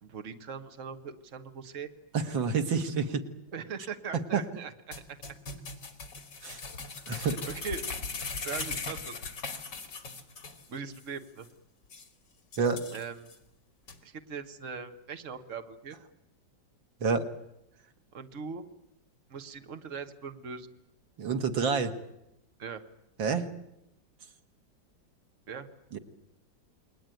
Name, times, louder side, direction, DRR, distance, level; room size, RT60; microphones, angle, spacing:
voice 1, 0.0-1.9 3.5-5.0 7.1-7.9 8.4-9.2 10.7-11.5 12.9-13.3 14.0-16.0 18.1-18.7 19.3-20.7 22.6-22.8 25.5-25.7, right 5 dB, 45° right, 7 dB, 1.8 m, -40 dB
voice 2, 2.1-3.2 4.3-4.4 6.4-6.6 7.1-7.3 12.6-12.8 17.0-17.3 21.2-21.9 23.2-23.5 25.9-26.0, right 5 dB, 85° right, 7 dB, 2.5 m, -28 dB
sound 1, 4.9-10.7 10.9-11.0 11.4-11.5 11.9-12.1 12.5-13.4 13.9-14.0, left 4 dB, 65° left, 3.2 m, -39 dB
29.0 x 21.5 x 9.3 m, 0.86 s
omnidirectional pair, 2.0 m